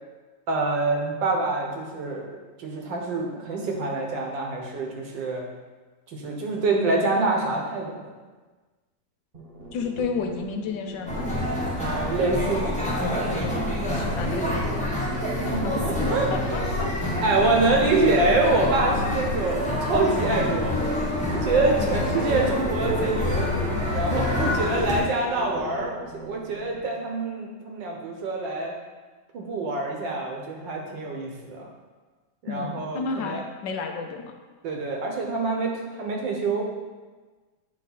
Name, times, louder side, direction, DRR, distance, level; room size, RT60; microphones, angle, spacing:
voice 1, 0.5-2.3 2.6-5.4 6.1-8.0 11.8-12.8 15.4-16.3 17.2-23.5 23.9-28.7 29.3-31.7 32.4-33.4 34.6-36.7, right 3 dB, 80° right, 0 dB, 1.8 m, -26 dB
sound 1, 9.3-26.8, right 2 dB, 35° right, 1.1 m, -41 dB
voice 2, 9.7-11.3 13.9-15.0 15.4-16.9 21.8-22.4 24.3-25.1 32.5-34.4, left 5 dB, 80° left, 3 dB, 1.4 m, -33 dB
sound 2, 11.1-25.0, left 1 dB, 5° left, 0.6 m, -26 dB
9.2 x 3.3 x 4.0 m, 1.3 s
omnidirectional pair, 2.0 m